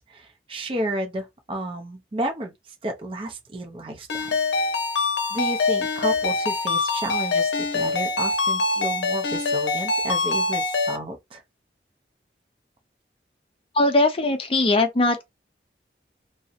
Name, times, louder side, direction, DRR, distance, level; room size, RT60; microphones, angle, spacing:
voice 1, 0.0-2.5 2.8-4.3 5.3-11.4, right 1 dB, 30° right, 0.5 m, -32 dB
Ringtone, 4.1-11.0, left 3 dB, 85° left, 0.6 m, -24 dB
voice 2, 13.8-15.2, left 2 dB, 30° left, 0.5 m, -20 dB
2.6 x 2.0 x 2.5 m
head